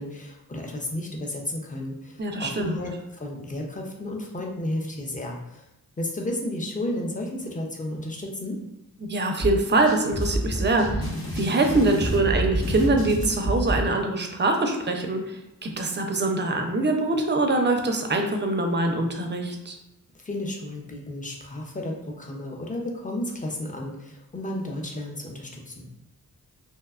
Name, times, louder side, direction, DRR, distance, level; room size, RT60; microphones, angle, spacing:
voice 1, 0.0-5.6 6.0-8.6 20.2-25.9, left 1 dB, 20° left, 0 dB, 0.5 m, -33 dB
voice 2, 2.2-2.8 9.0-11.0 11.3-19.8, right 2 dB, 30° right, 3 dB, 0.4 m, -24 dB
sound 1, 9.4-13.8, equal, 85° left, 1.2 m, -28 dB
2.6 x 2.1 x 2.3 m, 0.92 s
cardioid pair, 60°, 36 cm